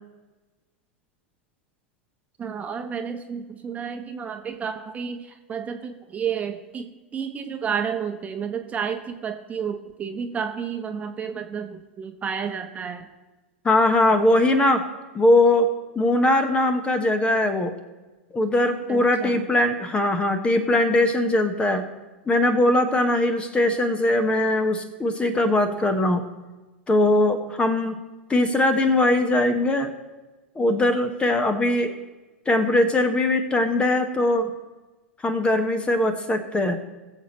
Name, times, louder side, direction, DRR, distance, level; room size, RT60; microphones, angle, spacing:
voice 1, 2.4-13.1 18.9-19.4, right 7 dB, 25° right, 5 dB, 1.0 m, -31 dB
voice 2, 13.6-14.9 15.1-15.7 15.9-17.7 18.3-21.9 22.3-26.2 26.9-28.0 28.3-29.9 30.5-31.9 32.5-34.5 35.2-36.7, left 1 dB, 15° left, 8 dB, 1.1 m, -21 dB
21.0 x 7.3 x 3.1 m, 1.1 s
figure-of-eight pair, 90°, 6 cm